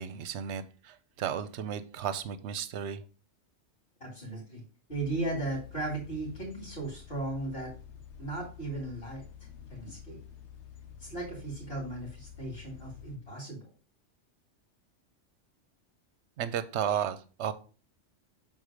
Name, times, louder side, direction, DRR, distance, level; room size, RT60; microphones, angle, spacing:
voice 1, 0.0-3.0 16.4-17.5, right 8 dB, 70° right, 13 dB, 0.9 m, -34 dB
voice 2, 4.0-4.6 4.9-7.7 8.2-9.2 9.7-10.2 11.0-13.6, right 2 dB, 50° left, -5 dB, 2.7 m, -36 dB
sound 1, 4.9-13.2, left 8 dB, 75° left, 1.2 m, -49 dB
6.5 x 3.9 x 5.0 m, 0.38 s
omnidirectional pair, 1.2 m